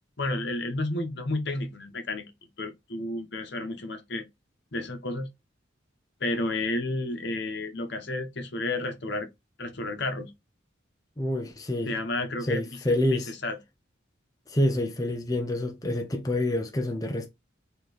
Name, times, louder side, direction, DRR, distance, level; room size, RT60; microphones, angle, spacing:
voice 1, 0.2-2.2 2.6-4.2 4.7-5.3 6.2-9.3 9.6-10.3 11.8-13.6, left 2 dB, 65° left, 1.0 m, -31 dB
voice 2, 11.2-11.9 12.5-13.3 14.5-17.3, left 1 dB, 20° left, 0.6 m, -27 dB
4.4 x 3.0 x 3.1 m
head